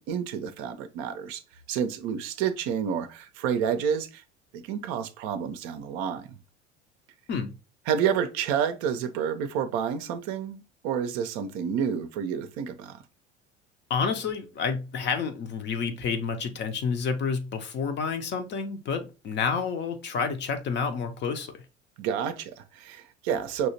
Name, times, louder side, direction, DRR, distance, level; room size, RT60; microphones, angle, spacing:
voice 1, 0.0-1.4 1.7-4.2 4.5-6.3 7.9-13.0 22.0-23.7, right 8 dB, 45° right, 0.6 m, -29 dB
voice 2, 13.9-21.6, left 5 dB, 30° left, 0.6 m, -29 dB
5.7 x 2.8 x 2.8 m
figure-of-eight pair, 70°, 35 cm